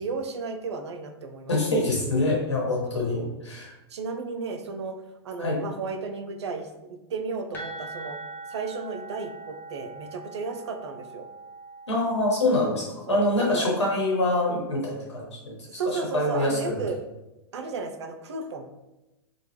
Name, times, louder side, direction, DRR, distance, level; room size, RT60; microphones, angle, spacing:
voice 1, 0.0-1.5 2.9-3.3 3.9-5.0 5.2-8.2 8.5-11.2 13.1-13.7 15.8-17.0 17.5-18.6, right 4 dB, 75° right, 5 dB, 0.4 m, -34 dB
voice 2, 1.5-3.7 5.4-5.6 11.9-16.8, left 2 dB, 85° left, -3 dB, 1.2 m, -25 dB
sound 1, 7.5-13.1, right 3 dB, 15° left, 0.7 m, -42 dB
3.0 x 2.3 x 3.1 m, 1.0 s
hypercardioid pair, 105°, 14 cm